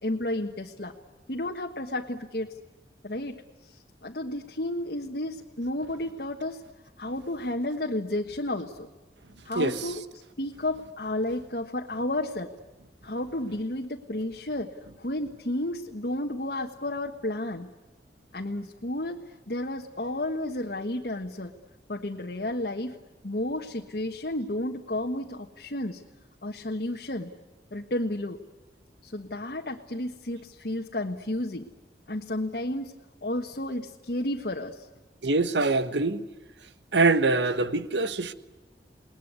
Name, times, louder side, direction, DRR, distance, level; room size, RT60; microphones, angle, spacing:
voice 1, 0.0-0.9 1.3-2.6 3.0-6.6 7.0-8.9 9.4-10.0 10.4-12.5 13.0-14.7 15.0-17.7 18.3-21.5 21.9-23.0 23.2-26.0 26.4-27.3 27.7-28.4 29.0-31.7 32.1-33.0 33.2-34.9, left 1 dB, 60° left, 1.5 m, -32 dB
voice 2, 9.5-9.9 35.2-36.2 36.9-38.3, right 3 dB, 85° right, 1.4 m, -24 dB
29.0 x 20.5 x 9.6 m
head